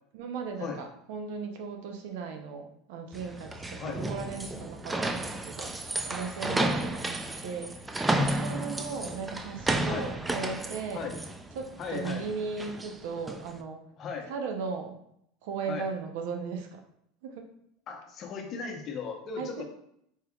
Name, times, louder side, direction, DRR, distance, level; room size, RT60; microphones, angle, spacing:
voice 1, 0.1-5.7 6.1-7.2 7.4-7.7 8.1-11.1 11.6-13.8 14.3-15.0 15.4-16.8 17.2-17.4 19.4-19.6, right 5 dB, 75° right, 4 dB, 0.6 m, -37 dB
sound 1, 3.1-13.5, right 2 dB, 10° right, 0.3 m, -33 dB
voice 2, 6.5-6.8 9.9-10.1 10.9-11.2 11.8-12.3 14.0-14.3 15.7-15.9 17.9-19.6, left 6 dB, 45° left, 3 dB, 0.8 m, -37 dB
Drum, 8.1-9.9, left 2 dB, 10° left, 0.9 m, -34 dB
4.5 x 3.4 x 2.3 m, 0.73 s
supercardioid pair, 110°, 0 cm